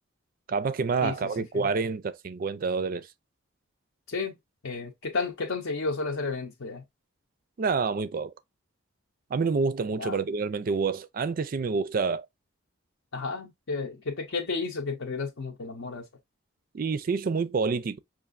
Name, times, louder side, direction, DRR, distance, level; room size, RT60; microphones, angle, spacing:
voice 1, 0.5-3.1 7.6-8.3 9.3-12.3 16.7-18.0, right 4 dB, 45° right, 0.4 m, -28 dB
voice 2, 4.6-6.8 10.0-10.2 13.1-16.0, left 4 dB, 65° left, 0.7 m, -32 dB
5.7 x 2.5 x 2.5 m
head